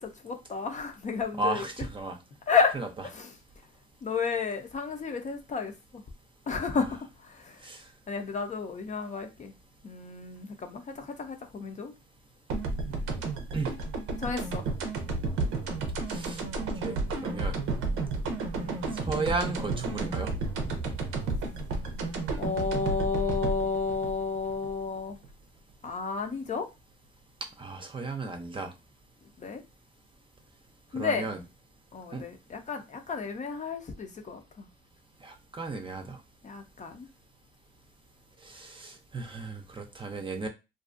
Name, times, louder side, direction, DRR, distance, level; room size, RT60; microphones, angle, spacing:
voice 1, 0.0-1.6 2.5-2.8 3.0-3.3 4.0-6.0 6.5-7.6 8.1-9.5 9.8-11.9 14.2-14.6 18.6-19.0 22.3-25.2 25.8-26.7 29.4-29.6 30.9-31.3 31.9-34.7 36.4-37.1, left 5 dB, 40° left, 0.5 m, -32 dB
voice 2, 1.4-2.2 2.7-2.9 7.6-7.8 12.9-13.0 13.5-13.7 16.1-16.4 16.8-17.6 18.9-20.3 20.6-20.7 27.6-28.7 31.0-31.4 32.1-32.2 35.2-36.2 38.4-40.5, right 3 dB, 25° right, 0.5 m, -34 dB
sound 1, 12.5-25.3, right 3 dB, 90° right, 0.6 m, -32 dB
2.5 x 2.3 x 2.5 m
cardioid pair, 90°, 20 cm